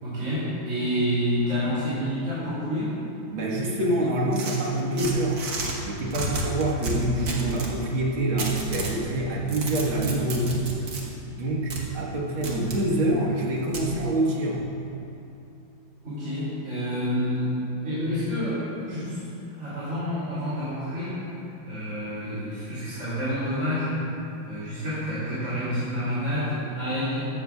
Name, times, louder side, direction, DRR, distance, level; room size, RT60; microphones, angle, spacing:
voice 1, 0.0-3.0 16.0-19.2 19.6-24.0 24.4-27.3, equal, 35° right, -12 dB, 3.0 m, -28 dB
voice 2, 3.3-5.4 5.8-10.7 11.3-14.7, right 1 dB, 85° right, -3 dB, 2.4 m, -26 dB
sound 1, 4.3-5.7 6.1-7.7 8.4-9.0 9.4-11.0 11.7-11.8 12.4-12.8 13.7-13.9, right 2 dB, 50° right, 1.7 m, -31 dB
15.5 x 12.0 x 2.3 m, 2.8 s
omnidirectional pair, 2.2 m